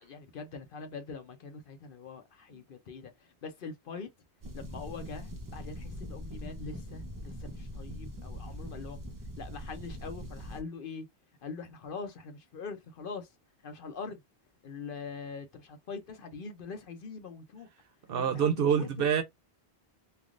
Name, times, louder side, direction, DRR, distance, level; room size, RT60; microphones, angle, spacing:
voice 1, 0.0-4.1 4.5-9.0 9.4-11.1 11.4-13.3 13.6-14.2 14.6-17.7 18.2-19.1, left 4 dB, 60° left, 0.8 m, -43 dB
sound 1, 4.4-10.6, equal, 35° right, 0.3 m, -42 dB
voice 2, 18.1-19.2, right 8 dB, 65° right, 0.7 m, -26 dB
3.3 x 2.3 x 2.4 m
omnidirectional pair, 1.1 m